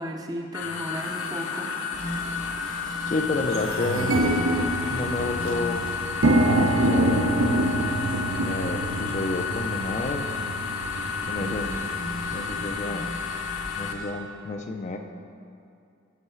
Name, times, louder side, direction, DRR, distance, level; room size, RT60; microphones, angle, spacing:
voice 1, 0.0-1.8 11.4-11.8, equal, 20° right, 2 dB, 0.5 m, -35 dB
sound 1, 0.5-13.9, left 6 dB, 85° left, 0.6 m, -32 dB
sound 2, 1.1-1.2 2.0-2.2 2.6-2.7 3.0-12.7, right 1 dB, 75° right, 0.6 m, -26 dB
sound 3, 1.9-14.1, equal, 65° left, 1.2 m, -40 dB
voice 2, 3.1-4.2 4.9-5.8 6.5-7.3 8.4-10.4 11.3-11.7 12.3-13.1 13.8-15.0, left 3 dB, 35° left, 4 dB, 0.4 m, -30 dB
9.8 x 4.6 x 5.6 m, 2.5 s
head